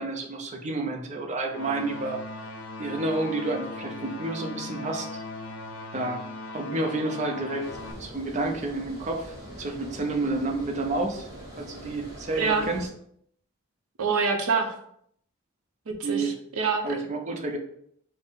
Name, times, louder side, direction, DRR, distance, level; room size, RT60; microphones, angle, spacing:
voice 1, 0.0-2.2 2.8-5.2 5.9-7.7 8.0-11.3 11.6-12.9 16.0-16.3 16.8-17.6, right 2 dB, 35° right, 3 dB, 0.5 m, -30 dB
sound 1, 1.5-7.9, left 2 dB, 55° left, 0.4 m, -38 dB
Water, 7.6-12.9, right 1 dB, 15° right, 0.9 m, -43 dB
voice 2, 12.4-12.7 14.0-14.7 15.9-16.9, right 5 dB, 85° right, 5 dB, 0.6 m, -26 dB
3.6 x 2.0 x 4.1 m, 0.68 s
head